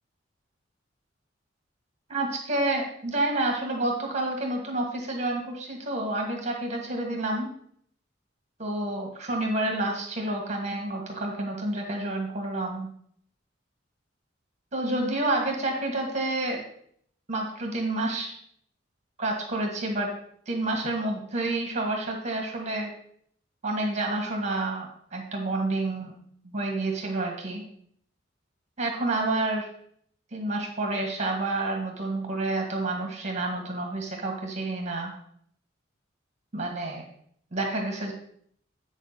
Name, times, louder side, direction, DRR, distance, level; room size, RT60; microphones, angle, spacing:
voice 1, 2.1-7.5 8.6-12.9 14.7-16.6 17.3-18.3 19.2-20.1 20.5-22.9 23.6-26.1 26.4-27.6 28.8-29.7 30.3-35.1 36.5-37.0 37.5-38.1, right 2 dB, 35° right, 1 dB, 1.7 m, -29 dB
8.3 x 6.2 x 4.1 m, 0.65 s
head